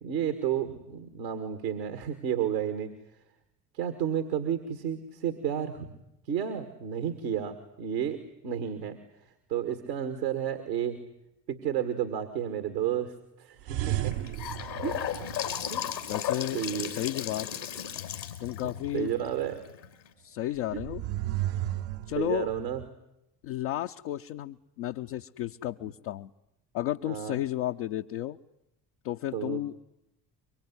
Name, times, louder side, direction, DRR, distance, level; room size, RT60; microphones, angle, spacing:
voice 1, 0.0-2.9 3.7-5.9 6.3-11.0 11.5-14.1 14.8-15.0 15.7-15.8 16.1-16.2 16.5-16.9 18.6-19.6 20.7-20.8 22.2-22.8 27.0-27.4 29.3-29.6, right 9 dB, 85° right, 8 dB, 2.0 m, -32 dB
sound 1, 13.6-16.0 20.6-22.9, right 13 dB, 60° right, 1.0 m, -34 dB
Gurgling / Sink (filling or washing) / Bathtub (filling or washing), 14.0-20.1, left 9 dB, 90° left, 3.4 m, -35 dB
voice 2, 16.1-17.5 18.4-19.1 20.2-21.0 22.1-22.5 23.4-26.3 26.7-28.4 29.0-29.8, left 14 dB, 65° left, 3 dB, 0.9 m, -33 dB
24.5 x 23.5 x 9.8 m, 0.85 s
figure-of-eight pair, 55°, 50 cm